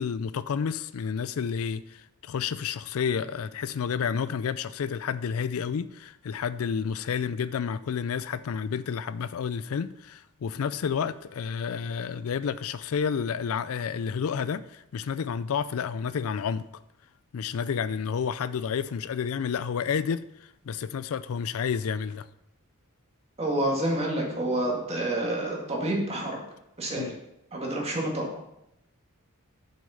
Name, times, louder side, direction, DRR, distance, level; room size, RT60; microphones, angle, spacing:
voice 1, 0.0-16.6 17.3-20.2 20.7-22.3 27.0-27.1, left 6 dB, 65° left, 0.4 m, -30 dB
voice 2, 23.4-26.4 26.8-27.1 27.5-28.3, right 1 dB, 30° right, 2.0 m, -28 dB
7.2 x 6.2 x 5.6 m
head